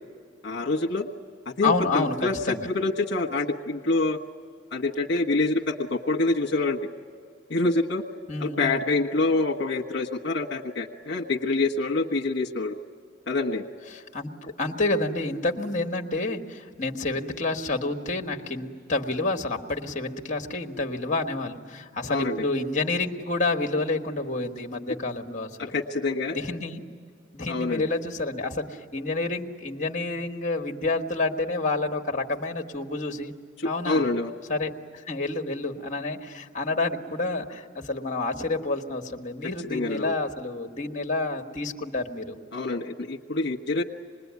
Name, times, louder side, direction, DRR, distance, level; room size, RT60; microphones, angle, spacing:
voice 1, 0.4-1.1 1.4-4.2 4.7-6.9 7.5-8.0 8.4-12.8 13.3-13.6 22.1-22.4 25.7-26.4 27.5-27.8 33.8-34.3 39.6-40.1 42.5-43.8, left 3 dB, 60° left, 1 dB, 1.3 m, -26 dB
voice 2, 1.6-2.1 2.4-2.7 8.3-8.8 13.9-25.7 26.3-26.8 27.3-33.4 33.6-34.0 34.5-42.4, left 2 dB, 40° left, 3 dB, 1.5 m, -29 dB
26.5 x 21.0 x 9.5 m, 2.1 s
head